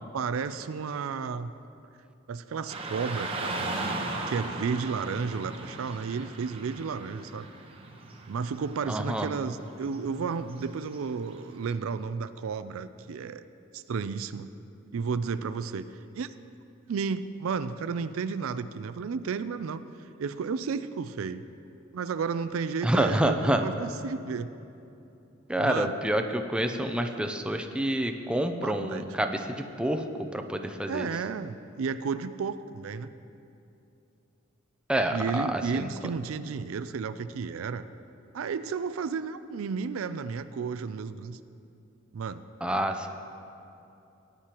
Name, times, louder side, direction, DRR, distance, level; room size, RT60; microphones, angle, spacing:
voice 1, 0.1-1.5 2.3-7.5 8.3-13.4 13.7-14.5 14.9-15.9 16.2-16.3 16.9-19.8 20.2-21.4 21.9-24.5 25.6-25.9 27.1-27.2 28.6-29.1 30.9-33.1 35.1-37.9 38.3-41.4 42.1-42.4, right 5 dB, 85° right, 13 dB, 0.4 m, -32 dB
Car passing by / Traffic noise roadway noise, 2.7-11.7, right 2 dB, 30° right, 1.0 m, -38 dB
voice 2, 8.9-9.3 22.8-23.6 25.5-31.1 34.9-35.9 42.6-43.1, right 1 dB, 5° right, 5 dB, 0.5 m, -28 dB
18.0 x 10.0 x 3.0 m, 2.8 s
head